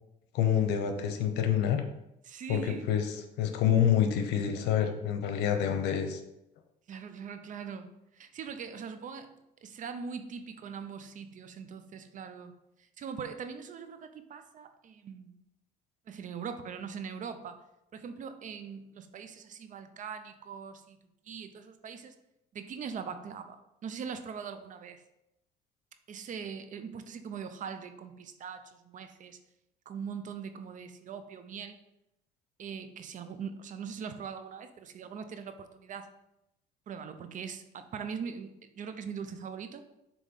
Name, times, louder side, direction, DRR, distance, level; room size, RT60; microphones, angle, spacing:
voice 1, 0.3-1.8 2.5-6.2, left 9 dB, 90° left, 7 dB, 0.9 m, -27 dB
voice 2, 2.2-2.9 6.9-9.3 9.6-12.5 13.0-15.4 16.1-17.6 17.9-21.0 21.2-22.1 22.5-25.0 26.1-29.4 29.9-31.8 32.6-36.1 36.9-39.8, right 6 dB, 50° right, 9 dB, 0.7 m, -41 dB
7.6 x 3.1 x 5.4 m, 0.86 s
cardioid pair, 110°, 17 cm